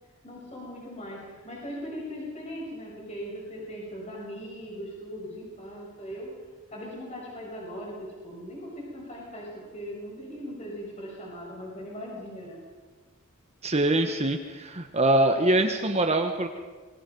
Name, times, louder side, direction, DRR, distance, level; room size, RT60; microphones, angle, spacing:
voice 1, 0.2-6.4 6.7-12.6, equal, 30° left, -2 dB, 6.0 m, -39 dB
voice 2, 13.6-16.5, right 1 dB, 30° right, 5 dB, 1.3 m, -23 dB
27.0 x 21.5 x 5.4 m, 1.4 s
head